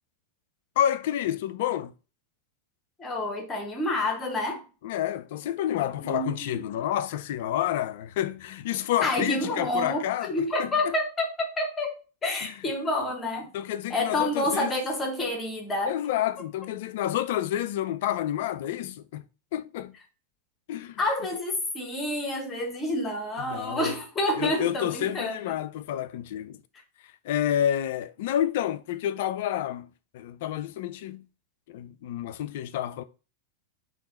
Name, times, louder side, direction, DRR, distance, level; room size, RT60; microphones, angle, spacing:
voice 1, 0.8-1.9 4.8-10.3 10.6-10.9 12.4-12.5 13.5-14.7 15.9-19.2 19.5-19.9 20.7-21.0 23.5-23.9 24.4-26.6 27.2-29.9 30.1-31.2 31.7-33.0, left 11 dB, 55° left, 0.4 m, -29 dB
voice 2, 3.0-4.6 6.0-6.6 9.0-13.5 13.9-16.0 21.0-25.5, left 1 dB, 20° left, 1.2 m, -29 dB
3.6 x 2.9 x 4.1 m
figure-of-eight pair, 90°, 0 cm